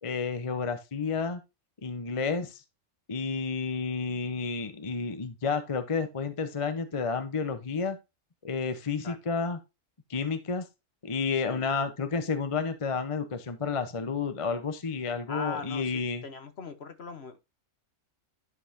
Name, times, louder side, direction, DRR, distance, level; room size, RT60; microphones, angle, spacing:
voice 1, 0.0-1.4 1.8-2.6 3.1-8.0 8.4-9.6 10.1-10.7 11.0-16.2, left 5 dB, 30° left, 0.7 m, -31 dB
voice 2, 15.3-15.8 16.2-17.4, left 5 dB, 50° left, 1.1 m, -39 dB
11.0 x 5.4 x 2.7 m
omnidirectional pair, 1.5 m